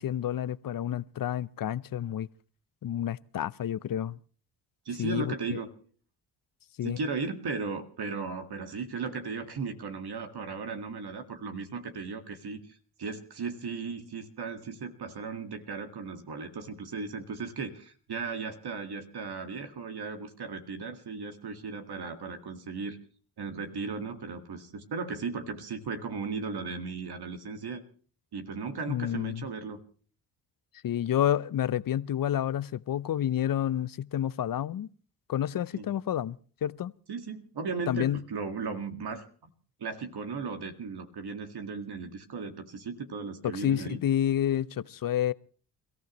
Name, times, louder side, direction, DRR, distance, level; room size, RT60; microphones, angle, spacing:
voice 1, 0.0-2.3 2.8-4.2 5.0-5.6 6.8-7.0 28.9-29.5 30.8-34.9 35.3-36.9 37.9-38.2 43.4-45.3, left 10 dB, 45° left, 0.7 m, -29 dB
voice 2, 4.9-5.7 6.8-23.0 23.4-27.8 28.3-29.8 35.7-35.9 37.1-39.5 39.8-44.0, right 4 dB, 55° right, 2.0 m, -36 dB
29.0 x 14.5 x 3.1 m
supercardioid pair, 50°, 47 cm